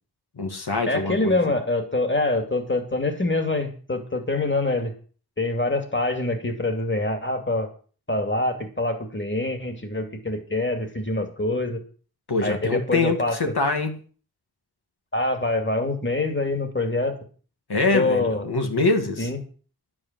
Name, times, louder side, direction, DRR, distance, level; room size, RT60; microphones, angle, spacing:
voice 1, 0.4-1.5 12.3-14.0 17.7-19.3, left 3 dB, 85° left, 2.0 m, -24 dB
voice 2, 0.9-4.9 5.4-7.7 8.1-11.8 12.4-13.3 15.1-17.1 17.9-18.4 19.2-19.4, left 2 dB, 30° left, 2.6 m, -25 dB
11.0 x 8.7 x 7.5 m
wide cardioid pair, 75°, 38 cm